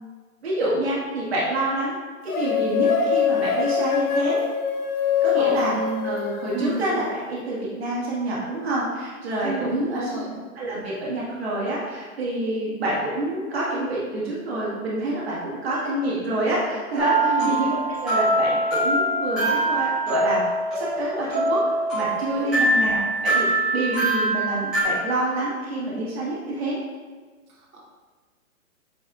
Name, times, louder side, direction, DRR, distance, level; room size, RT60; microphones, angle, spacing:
voice 1, 0.4-1.9 2.2-4.4 5.2-5.7 6.0-10.1 10.6-20.4 20.7-21.6 21.9-23.5 23.7-26.8, right 1 dB, 45° right, -6 dB, 1.8 m, -27 dB
sound 1, 2.3-6.8, left 7 dB, 85° left, 1.0 m, -23 dB
voice 2, 5.4-6.1 6.5-6.8 9.4-10.4 17.2-17.6 22.4-22.7 27.5-27.8, right 2 dB, 75° right, -4 dB, 1.7 m, -30 dB
sound 2, 17.0-24.8, right 1 dB, ahead, 1.1 m, -23 dB
8.8 x 4.6 x 2.4 m, 1.4 s
hypercardioid pair, 175°, 42 cm